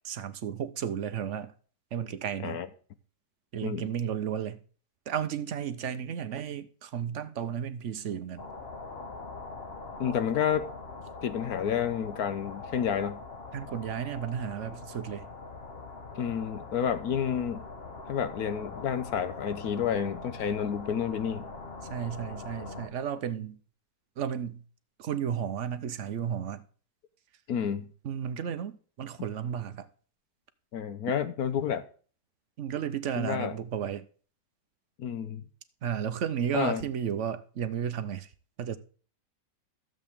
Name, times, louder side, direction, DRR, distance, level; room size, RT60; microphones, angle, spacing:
voice 1, 0.0-1.5 1.9-2.6 3.5-4.6 5.1-8.4 13.5-15.3 21.9-23.6 24.2-24.6 25.0-26.6 28.0-29.9 32.6-34.1 35.8-38.3 38.6-38.8, right 8 dB, 55° right, 0.9 m, -33 dB
sound 1, 8.4-22.9, left 3 dB, 40° left, 1.2 m, -43 dB
voice 2, 10.0-10.7 11.2-13.2 16.2-17.6 18.1-21.5 27.5-27.9 30.7-31.8 33.2-33.5 35.0-35.4 36.5-36.8, left 8 dB, 65° left, 1.2 m, -30 dB
12.5 x 7.7 x 3.5 m
omnidirectional pair, 1.9 m